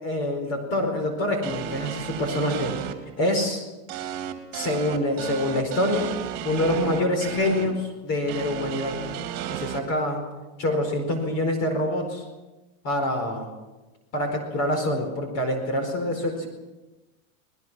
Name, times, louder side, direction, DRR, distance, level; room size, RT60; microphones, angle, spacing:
voice 1, 0.0-2.7 3.2-3.6 4.5-6.1 6.4-9.0 9.5-10.2 10.6-12.2 12.8-13.5 14.1-16.5, left 1 dB, 35° left, 5 dB, 4.6 m, -26 dB
sound 1, 1.4-2.9 3.9-7.7 8.3-9.8, right 9 dB, 40° right, 3.1 m, -33 dB
24.5 x 20.5 x 6.2 m, 1.1 s
supercardioid pair, 160°, 42 cm